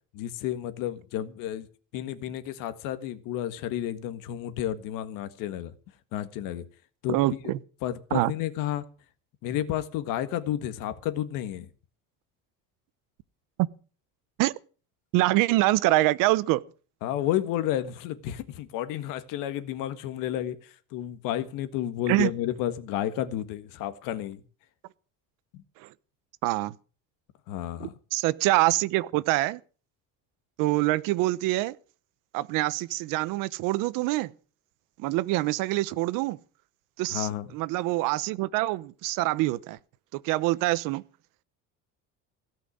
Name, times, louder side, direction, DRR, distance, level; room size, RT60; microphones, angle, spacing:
voice 1, 0.1-1.7 1.9-5.7 6.1-6.6 7.0-7.2 7.4-7.5 7.8-8.8 9.4-11.7 17.0-20.6 20.9-24.4 27.5-27.9 37.1-37.5, left 12 dB, 85° left, 1.7 m, -31 dB
voice 2, 7.1-7.6 8.1-8.3 13.6-13.7 14.4-14.5 15.1-16.6 22.1-22.3 25.8-25.9 26.4-26.7 27.8-29.6 30.6-31.8 32.3-34.3 35.0-36.4 37.0-39.8 40.1-41.0, right 18 dB, 85° right, 0.9 m, -25 dB
17.0 x 5.9 x 9.8 m
cardioid pair, 155°, 32 cm